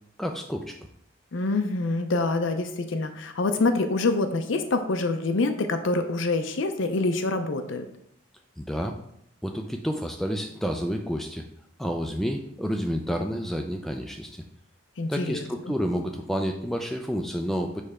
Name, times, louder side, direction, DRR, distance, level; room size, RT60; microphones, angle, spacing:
voice 1, 0.2-0.8 8.6-9.0 9.4-11.5 11.8-14.4 15.1-17.8, equal, ahead, 3 dB, 0.3 m, -29 dB
voice 2, 1.3-7.9 15.0-15.4, left 3 dB, 65° left, 8 dB, 0.5 m, -26 dB
6.6 x 3.3 x 4.8 m, 0.74 s
head